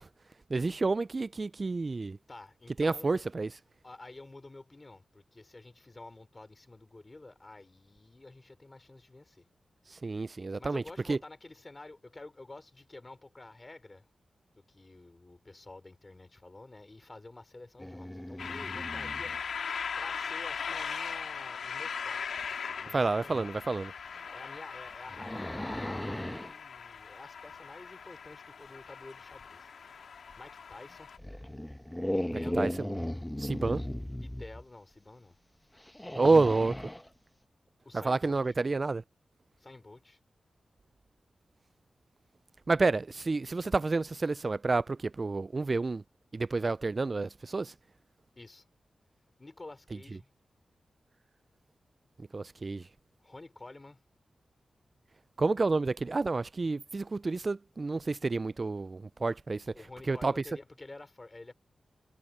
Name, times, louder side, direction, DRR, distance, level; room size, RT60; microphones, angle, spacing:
voice 1, 0.5-2.2 2.8-3.5 10.0-10.8 11.1-11.2 22.9-23.9 32.6-32.7 33.4-33.8 36.2-36.8 38.0-39.0 42.7-46.0 46.3-47.7 52.3-52.8 55.4-59.6 60.1-60.3, right 3 dB, 45° right, 0.4 m, -29 dB
voice 2, 2.3-3.1 3.8-9.5 10.6-14.1 14.6-22.2 22.5-23.7 24.3-29.7 30.0-31.1 32.1-32.7 34.2-35.3 37.8-38.5 39.6-40.2 48.4-48.7 49.4-50.3 53.2-54.0 59.7-61.5, left 2 dB, 35° left, 3.4 m, -50 dB
sound 1, 17.8-19.4 22.4-22.5 23.3-23.5 24.1-26.5 30.3-30.4 31.2-34.6 35.8-37.1, left 1 dB, 10° left, 1.0 m, -37 dB
sound 2, 18.4-31.2, left 6 dB, 85° left, 2.4 m, -39 dB
cardioid pair, 45°, 0 cm